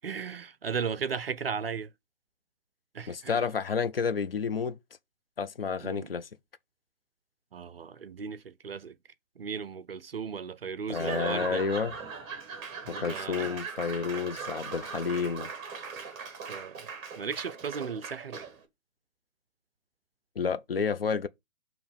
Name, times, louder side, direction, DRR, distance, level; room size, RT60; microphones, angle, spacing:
voice 1, 0.0-1.9 2.9-3.4 5.8-6.1 7.5-9.0 9.4-11.6 12.8-13.5 16.5-16.9 17.2-18.5, right 6 dB, 45° right, 0.5 m, -36 dB
voice 2, 3.1-4.8 5.4-6.3 10.9-11.9 12.9-15.5 20.4-21.3, left 6 dB, 45° left, 0.5 m, -30 dB
Laughter / Applause / Crowd, 10.9-18.6, right 5 dB, 20° right, 1.3 m, -39 dB
6.9 x 3.0 x 5.4 m
figure-of-eight pair, 145°, 41 cm